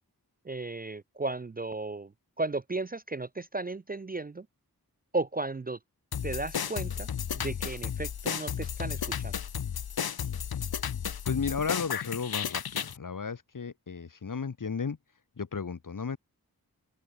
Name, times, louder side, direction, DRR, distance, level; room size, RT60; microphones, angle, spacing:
voice 1, 0.4-2.1 2.4-4.5 5.1-5.8 6.2-9.4, right 2 dB, 25° right, 0.4 m, -35 dB
sound 1, 6.1-13.0, left 8 dB, 80° left, 0.6 m, -33 dB
voice 2, 11.2-15.0 15.4-16.2, left 5 dB, 60° left, 1.0 m, -34 dB
open air
wide cardioid pair, 50°, 36 cm